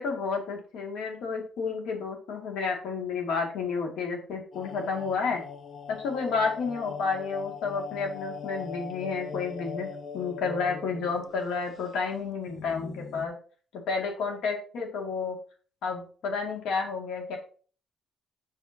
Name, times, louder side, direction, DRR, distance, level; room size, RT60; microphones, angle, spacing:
voice 1, 0.0-5.4 5.9-9.9 10.1-13.3 13.7-15.4 15.8-17.4, left 5 dB, 85° left, 2 dB, 2.3 m, -31 dB
sound 1, 4.5-11.5 11.8-11.9 12.5-13.3, left 6 dB, 50° left, 0.7 m, -40 dB
8.4 x 6.3 x 2.8 m, 0.41 s
cardioid pair, 90°, 0 cm